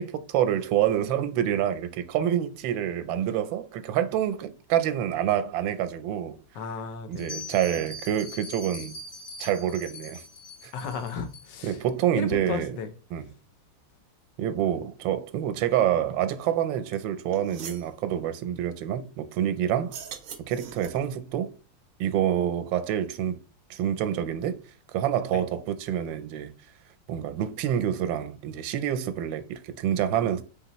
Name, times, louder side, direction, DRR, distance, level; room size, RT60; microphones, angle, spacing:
voice 1, 0.0-6.4 7.1-9.0 9.4-10.2 10.6-10.7 11.6-12.8 13.1-13.3 14.4-20.0 20.5-21.5 22.0-23.4 23.7-24.6 24.9-26.5 27.1-30.4, right 10 dB, 90° right, 1.3 m, -27 dB
voice 2, 6.5-7.3 10.7-11.8 12.1-12.9 25.3-25.4, left 6 dB, 75° left, 1.2 m, -34 dB
Bell, 7.1-11.8, left 2 dB, 50° left, 1.1 m, -42 dB
sound 1, 16.9-17.0 17.3-17.9 19.8-21.1, right 8 dB, 70° right, 0.7 m, -41 dB
4.3 x 3.5 x 2.9 m
omnidirectional pair, 2.0 m